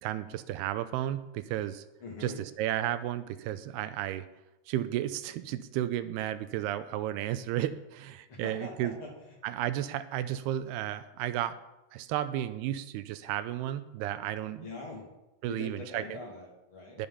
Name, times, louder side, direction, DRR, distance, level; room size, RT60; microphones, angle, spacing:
voice 1, 0.0-1.8 2.2-4.3 4.7-8.9 9.4-11.6 11.9-14.7 15.4-16.0 17.0-17.1, right 12 dB, 85° right, 13 dB, 2.6 m, -33 dB
voice 2, 2.0-2.4 8.3-9.1 14.6-15.1 15.5-17.1, left 3 dB, 35° left, -2 dB, 2.8 m, -42 dB
19.5 x 7.0 x 5.5 m, 1.0 s
omnidirectional pair, 4.6 m